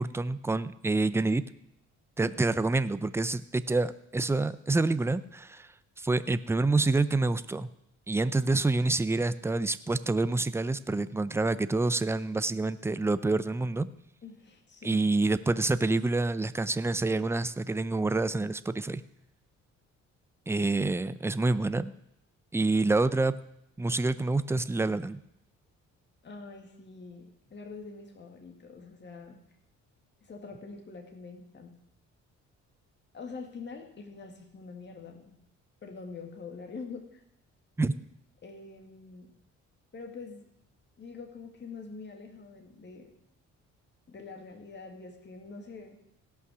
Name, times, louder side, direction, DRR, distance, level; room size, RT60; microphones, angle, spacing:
voice 1, 0.0-1.4 2.2-5.7 6.0-7.7 8.1-13.9 14.8-19.0 20.5-21.9 22.5-23.4 23.8-25.2 37.8-37.9, right 3 dB, 10° right, 14 dB, 0.5 m, -27 dB
voice 2, 2.2-2.6 14.2-15.1 26.2-29.4 30.2-31.7 33.1-35.4 35.8-37.2 38.4-39.3 39.9-40.5 41.0-43.1 44.1-46.0, left 4 dB, 35° left, 2 dB, 2.0 m, -45 dB
17.0 x 5.7 x 6.2 m, 0.81 s
cardioid pair, 90°, 30 cm